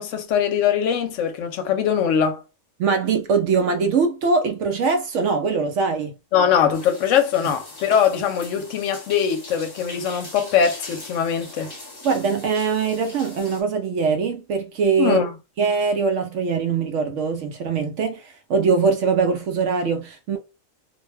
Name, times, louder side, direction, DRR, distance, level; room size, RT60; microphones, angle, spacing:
voice 1, 0.0-2.4 6.3-11.7 15.0-15.3, left 8 dB, 70° left, 0.9 m, -21 dB
voice 2, 2.8-6.2 12.0-15.2 15.6-20.4, right 5 dB, 70° right, 0.8 m, -22 dB
sound 1, 6.7-13.6, left 2 dB, 20° left, 0.8 m, -41 dB
2.6 x 2.2 x 3.2 m
omnidirectional pair, 1.4 m